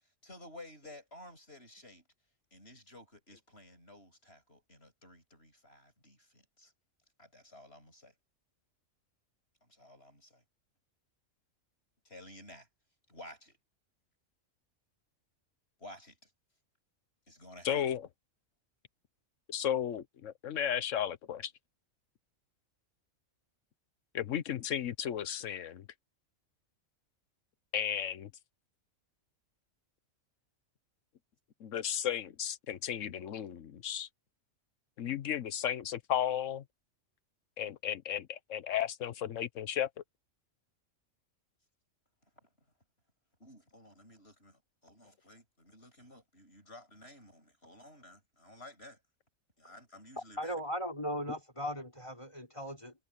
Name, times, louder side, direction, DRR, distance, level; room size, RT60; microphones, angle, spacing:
voice 1, 0.2-2.0 2.5-6.7 7.2-8.1 9.6-10.4 12.0-12.7 13.1-13.6 15.8-16.3 17.3-17.8 42.4-42.5 43.4-49.0 49.6-50.6, left 1 dB, 50° left, 8.5 m, -53 dB
voice 2, 17.6-18.0 19.5-21.5 24.1-25.8 27.7-28.3 31.6-34.1 35.0-36.6 37.6-39.9, left 9 dB, 70° left, 1.3 m, -34 dB
voice 3, 50.4-52.9, equal, 20° left, 3.7 m, -37 dB
omnidirectional pair, 1.4 m